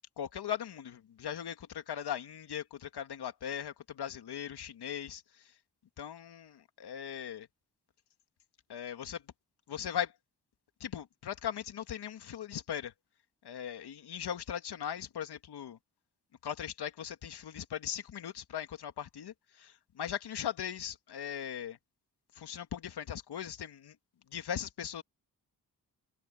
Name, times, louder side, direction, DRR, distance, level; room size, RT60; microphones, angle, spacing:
voice 1, 0.2-5.5 6.0-7.5 8.7-9.2 9.7-10.1 10.8-12.9 13.4-15.8 16.4-21.8 22.3-24.0 24.3-25.0, left 9 dB, 75° left, 2.3 m, -39 dB
open air
supercardioid pair, 50°, 40 cm